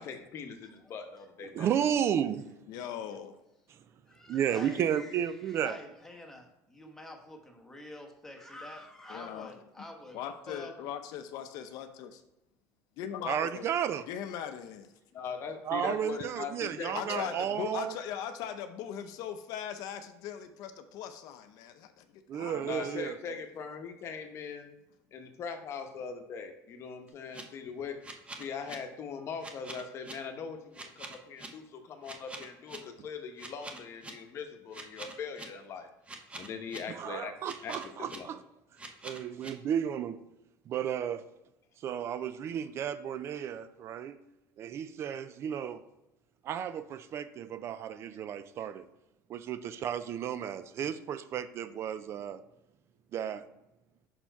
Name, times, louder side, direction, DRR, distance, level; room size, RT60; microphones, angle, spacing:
voice 1, 0.0-1.7 15.1-17.3 22.6-24.7 25.1-28.0 28.4-35.9 36.4-37.3 37.6-37.7 38.1-38.3, left 6 dB, 40° left, 5 dB, 0.9 m, -41 dB
voice 2, 1.4-2.5 3.7-3.8 4.3-5.8 13.2-14.1 15.6-18.0 22.3-23.2 36.9-38.4 39.0-40.2 40.7-41.2 41.8-44.2 44.6-45.8 46.4-48.9 49.3-52.4 53.1-53.4, right 9 dB, 40° right, 13 dB, 0.3 m, -33 dB
voice 3, 2.7-3.4 9.1-9.5 10.1-12.2 13.0-13.7 14.1-14.9 16.9-22.0 22.3-22.9, left 9 dB, 65° left, 9 dB, 0.6 m, -39 dB
voice 4, 4.1-10.7, left 1 dB, 5° left, 1 dB, 1.1 m, -48 dB
sound 1, 27.1-27.4 28.0-28.8 29.4-30.1 30.7-31.5 32.0-32.8 33.4-34.1 34.7-35.5 36.1-36.8 37.4-38.2 38.8-39.5, right 2 dB, 15° right, 0.8 m, -44 dB
5.8 x 4.4 x 4.5 m, 0.92 s
cardioid pair, 140°, 7 cm